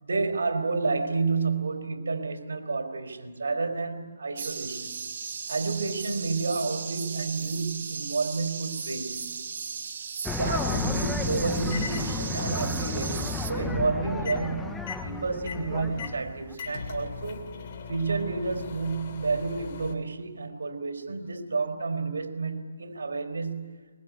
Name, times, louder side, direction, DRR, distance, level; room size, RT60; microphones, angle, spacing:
voice 1, 0.0-4.9 5.5-9.3 10.4-17.5 17.9-23.8, right 4 dB, 80° right, 3.7 m, -30 dB
sound 1, 4.4-13.5, right 6 dB, 50° right, 2.2 m, -36 dB
sound 2, 10.3-16.6, left 3 dB, 5° left, 0.9 m, -33 dB
sound 3, 11.7-12.1 14.2-14.5 14.8-20.0, left 5 dB, 40° left, 2.8 m, -40 dB
23.5 x 22.0 x 9.4 m
hypercardioid pair, 160°, 0 cm